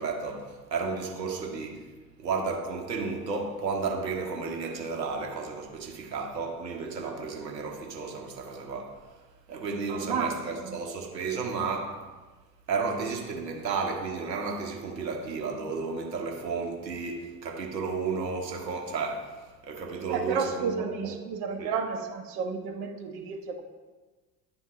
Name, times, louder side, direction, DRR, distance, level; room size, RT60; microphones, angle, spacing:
voice 1, 0.0-1.8 2.2-9.0 9.5-12.0 12.7-21.2 21.6-21.7, right 4 dB, 80° right, 2 dB, 1.0 m, -33 dB
voice 2, 9.9-10.4 10.6-10.8 20.0-23.6, right 5 dB, 45° right, 3 dB, 0.9 m, -32 dB
10.5 x 3.6 x 3.1 m, 1.3 s
figure-of-eight pair, 70°, 50 cm